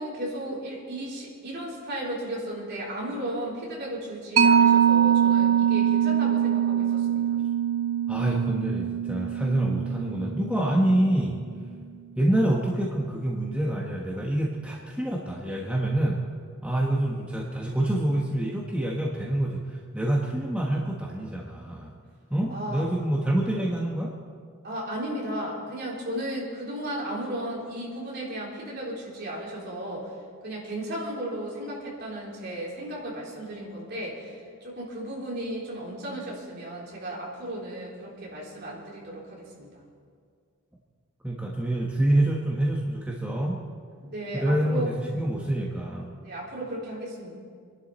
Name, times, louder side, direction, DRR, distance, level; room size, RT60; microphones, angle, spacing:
voice 1, 0.0-7.4 22.5-22.8 23.5-23.6 24.6-30.1 30.4-39.8 44.0-44.9 46.2-47.4, right 1 dB, 50° right, -4 dB, 3.9 m, -35 dB
Mallet percussion, 4.4-11.4, right 8 dB, 80° right, 1.0 m, -23 dB
voice 2, 8.1-11.4 12.2-16.2 16.6-21.9 22.3-24.1 41.2-43.6 44.3-46.1, right 1 dB, 5° right, -3 dB, 1.1 m, -26 dB
25.5 x 11.5 x 4.3 m, 2.1 s
head